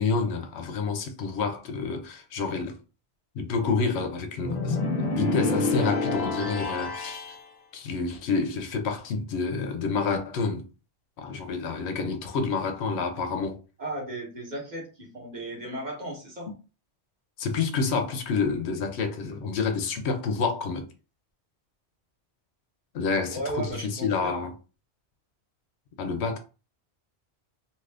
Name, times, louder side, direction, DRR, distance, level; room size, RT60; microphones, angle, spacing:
voice 1, 0.0-2.8 3.4-7.3 7.7-10.7 11.2-13.6 17.4-20.9 22.9-24.5 26.0-26.4, left 4 dB, 75° left, 0.9 m, -28 dB
sound 1, 4.4-7.4, left 2 dB, 45° left, 0.7 m, -27 dB
voice 2, 13.8-16.5 23.3-24.4, right 1 dB, 45° right, 1.2 m, -35 dB
2.7 x 2.5 x 3.3 m
omnidirectional pair, 1.1 m